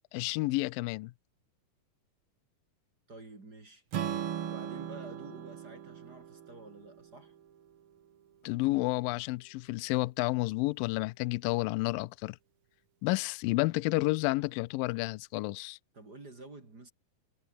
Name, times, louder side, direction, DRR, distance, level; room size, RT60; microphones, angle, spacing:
voice 1, 0.1-1.1 8.4-12.4 13.0-15.8, left 21 dB, 80° left, 2.2 m, -30 dB
voice 2, 3.1-3.8 4.4-7.3 15.9-16.9, right 2 dB, 25° right, 3.8 m, -49 dB
Strum, 3.9-8.1, right 9 dB, 60° right, 1.5 m, -39 dB
omnidirectional pair, 4.5 m